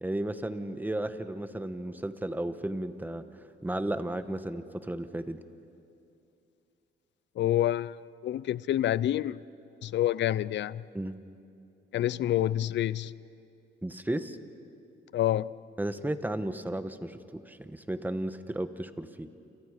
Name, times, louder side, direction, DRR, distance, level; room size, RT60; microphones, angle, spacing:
voice 1, 0.0-3.2 3.6-5.4 10.9-11.2 13.8-14.4 15.8-19.3, right 1 dB, 10° right, 1.1 m, -34 dB
voice 2, 7.4-8.0 8.2-9.4 9.8-10.8 11.9-13.1 15.1-15.5, left 12 dB, 65° left, 0.5 m, -27 dB
28.5 x 28.5 x 5.1 m
cardioid pair, 90°, 20 cm